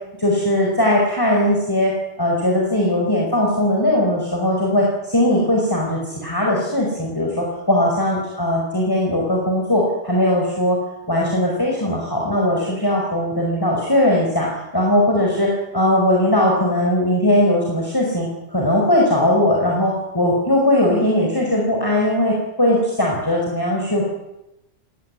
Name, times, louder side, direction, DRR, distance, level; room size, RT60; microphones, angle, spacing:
voice 1, 0.2-10.8 11.1-14.5 14.7-24.0, left 1 dB, 15° left, -2 dB, 5.0 m, -19 dB
20.0 x 17.5 x 9.8 m, 0.91 s
omnidirectional pair, 1.3 m